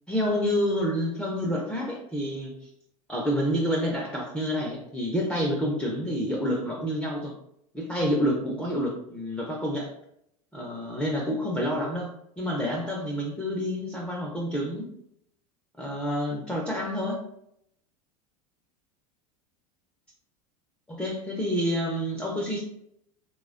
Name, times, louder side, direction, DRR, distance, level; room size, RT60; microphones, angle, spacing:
voice 1, 0.1-2.6 3.1-7.3 7.7-9.9 10.5-12.1 12.4-14.9 15.8-17.2 20.9-22.6, equal, 5° left, -2 dB, 0.4 m, -28 dB
3.1 x 2.1 x 2.4 m, 0.75 s
hypercardioid pair, 95°, 18 cm